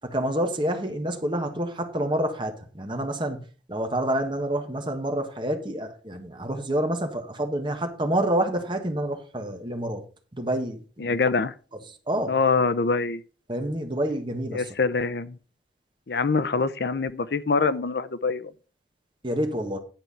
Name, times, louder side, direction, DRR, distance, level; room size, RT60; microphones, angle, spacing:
voice 1, 0.0-3.4 3.7-10.0 10.3-11.2 12.1-12.3 13.5-14.7 19.2-19.8, right 1 dB, 30° right, 1.5 m, -28 dB
voice 2, 11.0-11.5 12.3-13.2 14.5-15.4 16.1-18.5, left 4 dB, 65° left, 0.6 m, -24 dB
10.5 x 4.6 x 5.6 m
head